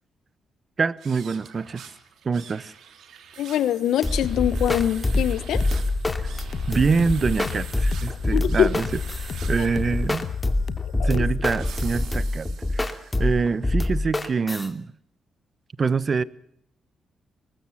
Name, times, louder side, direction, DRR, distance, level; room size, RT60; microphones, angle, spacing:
voice 1, 0.8-1.8 2.2-2.7 6.7-8.9 9.5-10.2 11.0-12.5 12.7-14.9 15.8-16.2, right 5 dB, 40° right, 1.0 m, -25 dB
sound 1, 0.9-13.4, right 8 dB, 80° right, 3.1 m, -45 dB
voice 2, 3.4-5.6 8.3-8.7 11.0-11.2, left 11 dB, 85° left, 1.2 m, -23 dB
sound 2, 4.0-14.7, left 2 dB, 15° left, 2.5 m, -26 dB
sound 3, 4.2-11.6, left 7 dB, 60° left, 1.2 m, -33 dB
23.0 x 19.5 x 7.3 m
cardioid pair, 105°, 0 cm